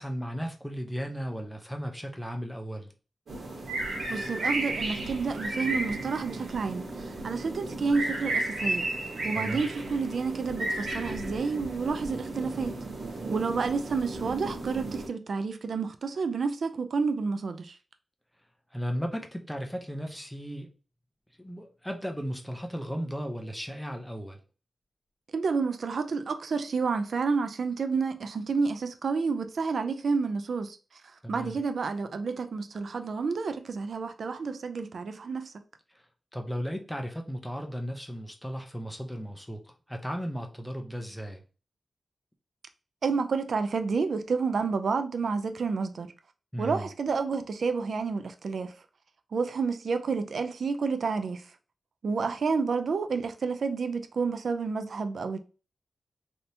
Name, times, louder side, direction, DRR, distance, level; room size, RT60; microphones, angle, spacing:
voice 1, 0.0-2.9 9.4-9.7 18.7-20.7 21.4-24.4 31.2-31.6 36.3-41.4 46.5-46.9, equal, 5° left, 0.5 m, -35 dB
sound 1, 3.3-15.1, right 2 dB, 85° right, 1.1 m, -34 dB
voice 2, 4.1-8.9 9.2-12.7 13.3-17.7 25.3-30.8 31.3-35.5 43.0-46.1 46.6-48.7 49.3-51.5 52.0-55.4, right 4 dB, 65° right, 0.4 m, -30 dB
3.3 x 2.8 x 2.7 m
wide cardioid pair, 145°, 0 cm